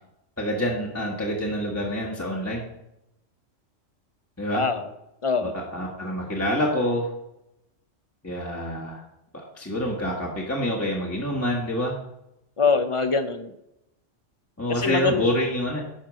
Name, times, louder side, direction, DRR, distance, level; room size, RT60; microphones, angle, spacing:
voice 1, 0.4-2.6 4.4-4.7 5.5-7.1 8.2-9.0 9.5-12.0 14.6-15.8, equal, 10° left, -3 dB, 1.3 m, -27 dB
voice 2, 4.5-4.8 5.2-5.6 12.6-13.5 14.7-15.3, left 5 dB, 40° left, 9 dB, 0.5 m, -23 dB
10.5 x 4.6 x 6.2 m, 0.85 s
omnidirectional pair, 1.3 m